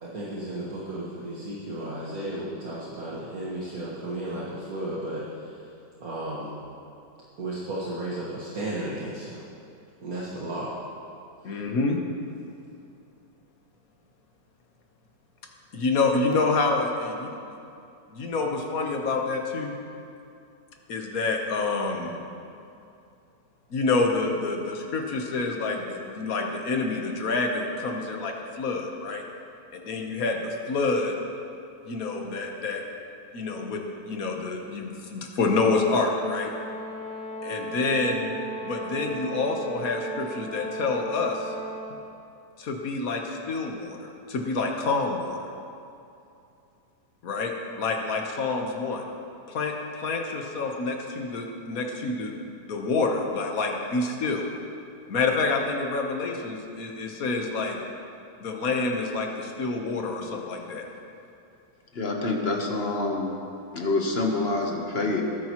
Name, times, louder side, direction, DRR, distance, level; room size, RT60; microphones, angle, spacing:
voice 1, 0.0-5.6 6.0-6.6 7.4-9.5 10.0-10.8, right 1 dB, 55° right, -7 dB, 1.9 m, -34 dB
voice 2, 11.4-12.0 15.7-17.6 18.1-19.7 20.9-22.2 23.7-29.2 29.7-31.2 31.9-32.8 33.3-36.5 37.4-38.3 38.6-41.5 42.6-45.4 47.2-49.0 49.5-52.3 52.7-54.5 55.1-57.8 58.4-60.8, left 3 dB, 55° left, 2 dB, 1.5 m, -27 dB
Brass instrument, 35.7-42.1, right 2 dB, 85° left, 3.0 m, -36 dB
voice 3, 61.9-63.3 63.7-65.2, left 2 dB, 40° left, 1 dB, 1.2 m, -26 dB
19.0 x 10.0 x 3.0 m, 2.6 s
omnidirectional pair, 1.9 m